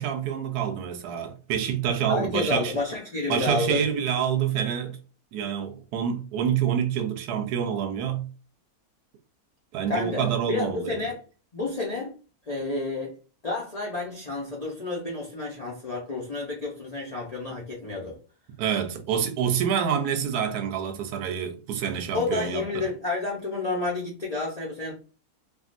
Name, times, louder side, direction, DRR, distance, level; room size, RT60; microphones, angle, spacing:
voice 1, 0.0-2.7 3.3-5.0 5.3-8.3 9.7-10.9 18.6-22.9, right 8 dB, 85° right, 1.1 m, -27 dB
voice 2, 2.1-3.9 9.9-11.2 11.5-12.1 12.5-13.1 13.4-18.2 22.1-24.9, left 3 dB, 55° left, 0.4 m, -30 dB
3.6 x 2.2 x 2.5 m
omnidirectional pair, 1.6 m